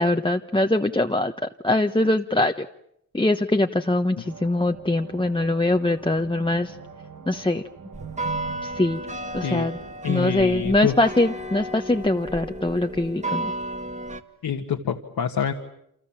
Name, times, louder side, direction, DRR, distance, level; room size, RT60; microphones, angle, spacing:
voice 1, 0.0-1.3 1.6-2.7 3.1-6.8 7.3-7.6 8.6-9.0 9.3-9.8 10.1-13.5, left 2 dB, 15° left, 5 dB, 1.1 m, -22 dB
sound 1, 4.2-10.0, right 6 dB, 60° right, 1.9 m, -42 dB
sound 2, 7.9-14.2, right 1 dB, 20° right, 2.0 m, -33 dB
voice 2, 10.0-11.0 14.4-15.5, left 8 dB, 80° left, 4 dB, 1.9 m, -26 dB
29.0 x 27.0 x 7.4 m, 0.76 s
cardioid pair, 55°, 35 cm